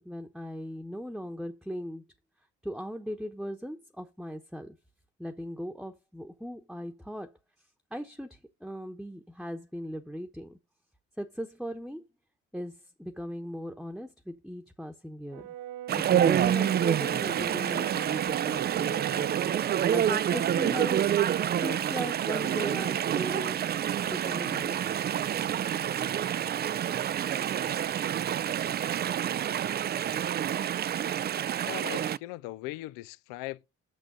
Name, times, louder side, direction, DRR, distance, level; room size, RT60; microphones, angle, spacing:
voice 1, 0.0-2.0 2.6-4.8 5.2-7.3 7.9-10.6 11.2-12.0 12.5-15.5 15.9-19.4 19.9-21.1 21.6-23.6 24.1-25.0, equal, ahead, 1.0 m, -38 dB
Brass instrument, 15.3-19.6, right 12 dB, 85° right, 0.6 m, -38 dB
Chatter / Stream, 15.9-32.2, right 10 dB, 30° right, 0.4 m, -28 dB
voice 2, 31.6-33.7, left 18 dB, 80° left, 0.5 m, -39 dB
6.4 x 6.1 x 5.1 m
hypercardioid pair, 60°, 33 cm